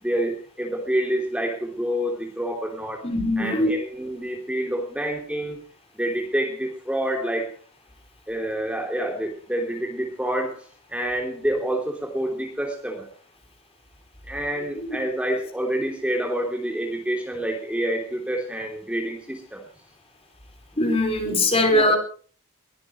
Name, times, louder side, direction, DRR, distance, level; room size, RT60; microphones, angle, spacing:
voice 1, 0.0-3.1 3.4-5.6 5.9-7.5 8.3-10.6 10.9-13.1 14.3-19.6 21.7-22.0, right 1 dB, 5° right, 1 dB, 3.3 m, -27 dB
voice 2, 3.0-3.7 20.8-22.0, left 2 dB, 25° left, 4 dB, 5.1 m, -21 dB
22.5 x 17.0 x 3.3 m, 0.44 s
head